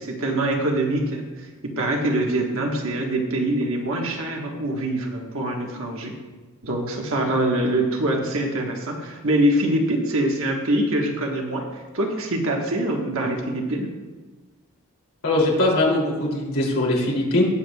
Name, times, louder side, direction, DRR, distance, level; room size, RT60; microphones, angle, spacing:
voice 1, 0.0-6.1 6.6-13.9, right 1 dB, 60° right, 1 dB, 1.5 m, -24 dB
voice 2, 15.2-17.4, left 1 dB, 70° left, -4 dB, 2.9 m, -21 dB
20.0 x 7.2 x 2.3 m, 1.3 s
head